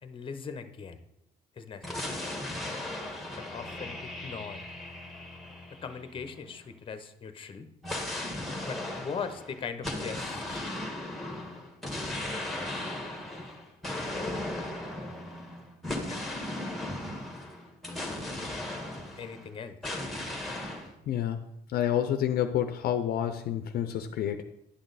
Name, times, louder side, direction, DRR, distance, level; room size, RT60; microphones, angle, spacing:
voice 1, 0.0-1.0 1.6-2.2 3.4-4.6 5.8-7.7 8.7-10.8 14.1-14.4 16.0-16.2 17.9-18.0 19.2-20.0, left 6 dB, 30° left, 10 dB, 0.8 m, -40 dB
sound 1, 1.8-6.5 7.8-19.5 19.8-20.9, left 1 dB, ahead, 1.5 m, -37 dB
voice 2, 21.1-21.4 21.7-24.4, left 10 dB, 65° left, 9 dB, 0.6 m, -28 dB
9.7 x 6.2 x 4.0 m, 0.80 s
cardioid pair, 110°, 17 cm